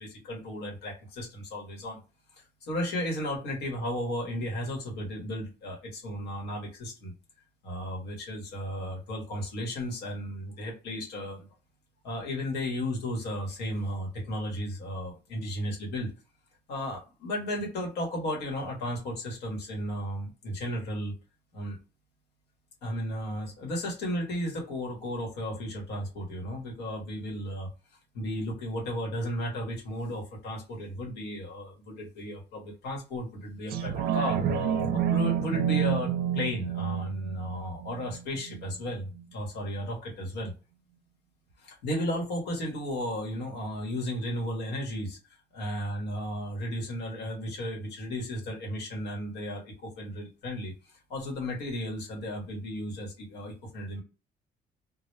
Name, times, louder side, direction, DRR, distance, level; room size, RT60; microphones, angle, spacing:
voice 1, 0.0-2.0 2.3-7.1 7.6-11.5 12.0-16.1 16.7-21.1 21.5-21.8 22.8-27.7 28.1-34.4 34.9-40.5 41.6-54.0, equal, 85° left, -1 dB, 1.0 m, -34 dB
sound 1, 33.7-38.7 39.2-39.3, right 9 dB, 60° right, 0.5 m, -29 dB
2.0 x 2.0 x 3.0 m, 0.31 s
cardioid pair, 110°, 17 cm